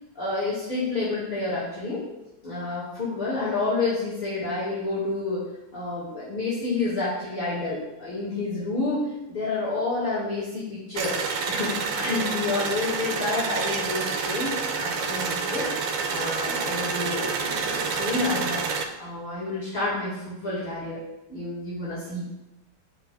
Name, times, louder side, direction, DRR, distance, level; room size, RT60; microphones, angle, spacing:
voice 1, 0.2-2.0 2.4-5.4 5.7-15.7 16.1-18.6 19.0-21.0 21.3-22.2, left 3 dB, 30° left, -8 dB, 1.7 m, -29 dB
sound 1, 11.0-18.9, right 5 dB, 80° right, 1.5 m, -28 dB
11.5 x 4.5 x 2.2 m, 0.97 s
omnidirectional pair, 2.3 m